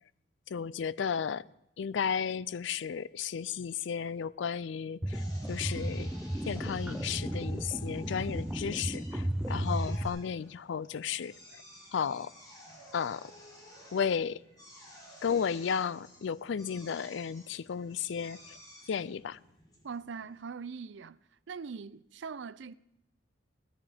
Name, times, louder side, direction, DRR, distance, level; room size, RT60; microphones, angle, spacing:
voice 1, 0.5-1.5 1.8-6.1 6.5-11.6 11.9-12.3 12.9-13.3 13.9-14.4 15.2-18.6 18.9-19.4, left 7 dB, 65° left, 0.4 m, -34 dB
sound 1, 5.0-10.1, right 1 dB, 5° right, 0.5 m, -34 dB
Drill, 5.1-20.4, equal, 20° left, 3.8 m, -54 dB
voice 2, 19.8-21.2 21.5-22.7, right 5 dB, 65° right, 0.4 m, -41 dB
18.0 x 13.5 x 3.4 m
head